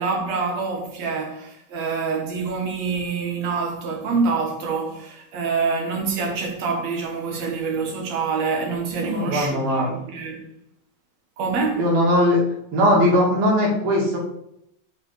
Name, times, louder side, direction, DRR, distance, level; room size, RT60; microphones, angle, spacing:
voice 1, 0.0-10.4 11.4-11.9, right 4 dB, 55° right, 2.5 m, -26 dB
voice 2, 8.9-9.9 11.8-12.4 12.7-14.2, equal, 85° right, 4.3 m, -19 dB
7.3 x 5.5 x 6.7 m
omnidirectional pair, 4.1 m